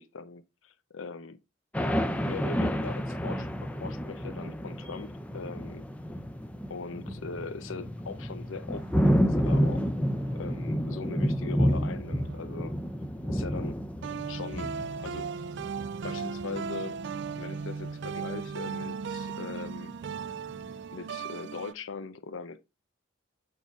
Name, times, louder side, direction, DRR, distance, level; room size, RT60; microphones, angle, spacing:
voice 1, 0.0-1.4 2.2-5.9 6.7-9.9 10.3-12.7 13.2-15.3 16.0-17.0 17.4-20.0 20.9-22.6, left 4 dB, 75° left, 0.7 m, -41 dB
sound 1, 1.7-18.0 18.2-19.0 19.4-19.6 20.0-20.5, equal, 5° left, 0.6 m, -30 dB
sound 2, 8.8-11.3 12.0-13.5 14.0-21.7, right 5 dB, 60° right, 0.4 m, -38 dB
8.9 x 3.6 x 5.3 m
head